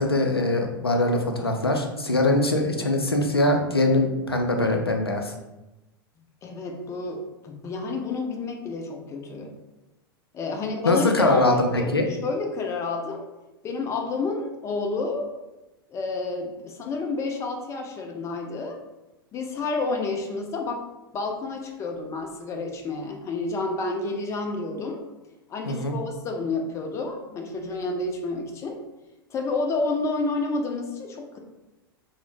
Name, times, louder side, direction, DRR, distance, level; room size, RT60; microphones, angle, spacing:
voice 1, 0.0-5.3 10.8-12.1 25.7-25.9, left 2 dB, 90° left, 3 dB, 0.4 m, -22 dB
voice 2, 6.4-9.5 10.3-13.2 13.6-15.3 15.9-18.8 19.3-20.8 21.1-25.0 25.5-28.8 29.3-31.4, left 3 dB, 25° left, 3 dB, 0.4 m, -30 dB
2.5 x 2.0 x 3.2 m, 1.0 s
figure-of-eight pair, 90°, 13 cm